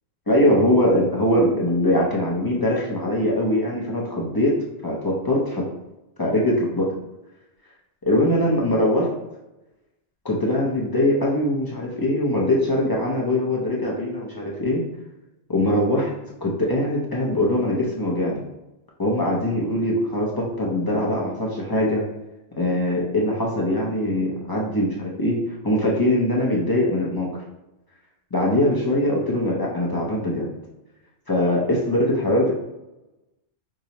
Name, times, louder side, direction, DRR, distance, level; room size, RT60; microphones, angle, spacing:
voice 1, 0.3-4.6 4.8-5.6 6.2-6.9 8.0-9.1 10.2-14.8 15.5-16.1 16.4-18.4 19.0-22.0 22.6-27.3 28.3-30.5 31.3-32.5, left 1 dB, 30° left, -4 dB, 0.4 m, -22 dB
4.7 x 2.0 x 2.8 m, 0.96 s
omnidirectional pair, 1.1 m